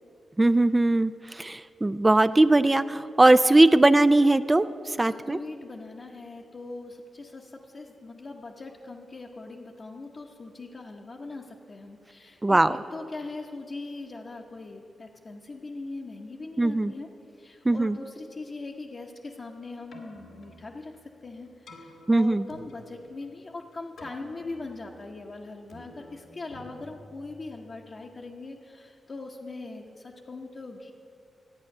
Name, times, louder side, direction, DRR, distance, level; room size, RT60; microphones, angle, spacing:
voice 1, 0.4-5.4 12.4-12.8 16.6-16.9 17.7-18.0 22.1-22.4, right 2 dB, 20° right, 12 dB, 0.4 m, -20 dB
voice 2, 5.0-17.1 17.4-30.9, left 3 dB, 50° left, -3 dB, 1.0 m, -41 dB
Keyboard (musical), 19.7-27.9, left 1 dB, 80° left, 1.7 m, -51 dB
12.5 x 8.5 x 6.6 m, 2.5 s
supercardioid pair, 50°, 0 cm